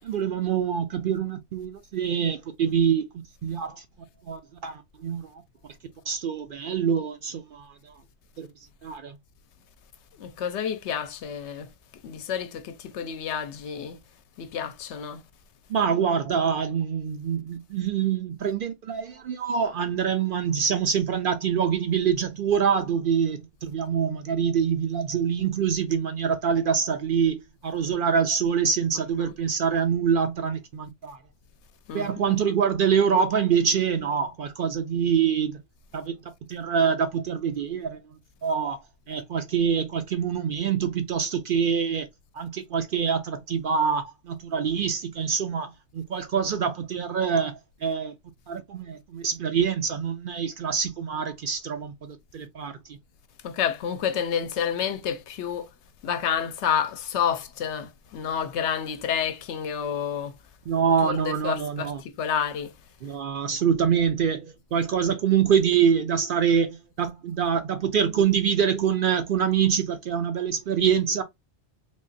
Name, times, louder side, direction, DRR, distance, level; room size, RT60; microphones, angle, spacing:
voice 1, 0.0-3.1 3.4-3.8 4.2-5.4 6.1-7.9 8.4-8.5 8.8-9.2 15.7-31.2 31.9-35.6 35.9-36.2 36.5-38.0 38.4-38.8 39.1-42.1 42.3-48.1 48.5-52.8 60.7-62.0 63.0-71.2, right 7 dB, 60° right, 0.6 m, -25 dB
voice 2, 10.1-11.7 12.0-14.0 14.4-15.2 29.2-29.3 31.9-32.3 53.4-55.7 56.0-60.3 61.0-62.7, left 8 dB, 75° left, 0.9 m, -29 dB
3.6 x 2.9 x 2.5 m
omnidirectional pair, 1.2 m